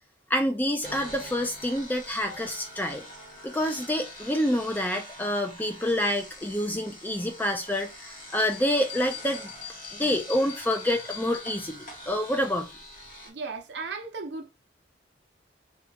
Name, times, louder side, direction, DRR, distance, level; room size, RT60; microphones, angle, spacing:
voice 1, 0.3-3.0 3.4-9.5 9.9-12.7, left 1 dB, 10° left, 0.3 m, -27 dB
sound 1, 0.8-13.3, equal, 45° left, 0.9 m, -44 dB
sound 2, 8.5-11.9, left 10 dB, 75° left, 0.6 m, -42 dB
voice 2, 13.2-14.6, right 4 dB, 65° right, 0.6 m, -36 dB
2.9 x 2.3 x 3.4 m
head